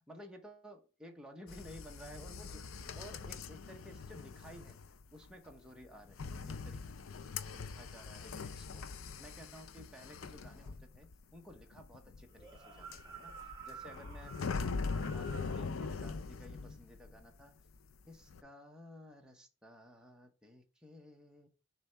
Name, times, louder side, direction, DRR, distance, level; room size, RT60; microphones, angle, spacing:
voice 1, 0.1-4.8 5.1-6.8 7.4-8.9 9.2-14.4 15.0-17.6 18.1-21.5, equal, 5° right, 0.9 m, -54 dB
sound 1, 1.5-17.4 17.7-18.4, left 4 dB, 75° left, 0.5 m, -42 dB
sound 2, 12.3-15.7, right 5 dB, 20° right, 1.6 m, -51 dB
6.9 x 3.3 x 4.5 m
head